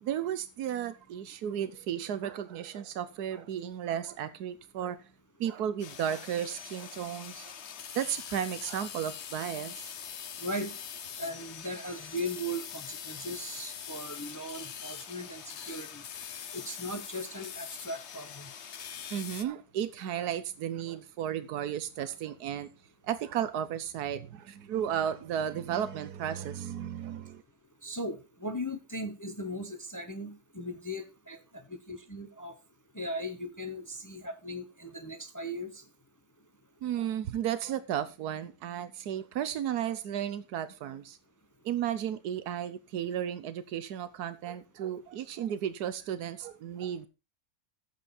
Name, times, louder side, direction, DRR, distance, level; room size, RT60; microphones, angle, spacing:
voice 1, 0.0-5.0 5.4-7.5 7.9-9.9 19.1-22.7 23.0-27.4 36.8-41.2 41.6-47.1, right 9 dB, 85° right, 1.4 m, -34 dB
sound 1, 5.8-19.4, left 8 dB, 50° left, 1.0 m, -43 dB
voice 2, 10.4-10.8 11.2-16.0 16.5-18.5 27.8-31.4 31.7-32.6 32.9-35.8, equal, 15° left, 0.9 m, -38 dB
12.5 x 8.5 x 4.2 m
omnidirectional pair, 1.6 m